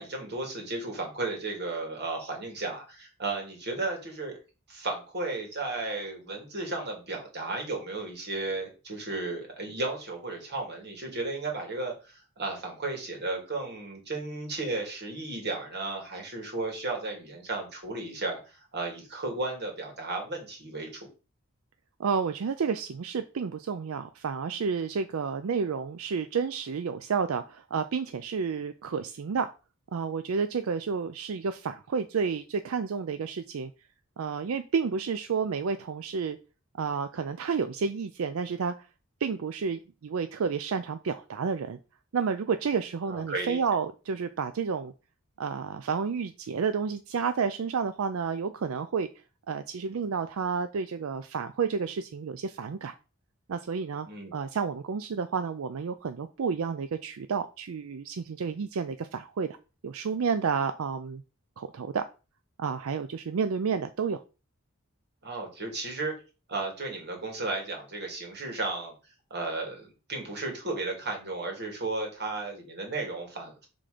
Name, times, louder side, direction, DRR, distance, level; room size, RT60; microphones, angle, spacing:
voice 1, 0.0-4.4 4.7-21.1 43.1-43.6 54.1-54.3 65.2-66.1 66.5-68.9 69.3-73.7, right 2 dB, 55° right, 2 dB, 2.3 m, -34 dB
voice 2, 22.0-29.5 29.9-33.7 34.2-36.4 36.8-38.9 39.2-41.8 42.1-44.9 45.4-49.1 49.5-52.9 53.5-54.1 54.3-59.5 59.8-61.2 61.6-62.0 62.6-64.2, right 5 dB, 75° right, 10 dB, 0.4 m, -30 dB
5.9 x 3.7 x 5.0 m, 0.32 s
head